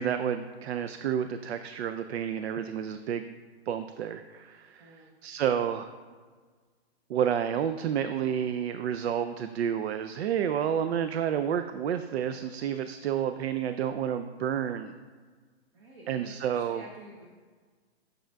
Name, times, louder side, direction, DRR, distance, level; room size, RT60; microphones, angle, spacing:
voice 1, 0.0-3.3 3.7-5.0 5.2-5.9 7.1-14.9 16.1-16.8, right 9 dB, 75° right, 9 dB, 0.5 m, -30 dB
voice 2, 4.8-5.1 15.7-17.3, right 1 dB, 30° right, -1 dB, 0.7 m, -49 dB
8.7 x 6.3 x 2.3 m, 1.5 s
hypercardioid pair, 165°, 32 cm